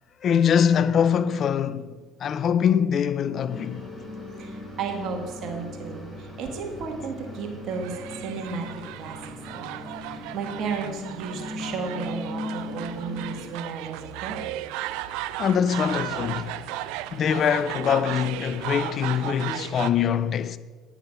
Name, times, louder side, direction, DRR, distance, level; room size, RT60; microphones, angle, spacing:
voice 1, 0.2-1.9 2.2-3.9 15.4-16.6 17.1-20.6, left 8 dB, 50° left, 0.5 m, -23 dB
sound 1, 3.5-13.5, left 2 dB, 10° right, 2.3 m, -39 dB
voice 2, 4.4-8.7 9.0-9.2 9.5-14.5, right 5 dB, 60° right, 1.5 m, -33 dB
sound 2, 7.7-19.9, right 15 dB, 80° right, 0.4 m, -35 dB
9.2 x 6.9 x 5.7 m
supercardioid pair, 80°, 0 cm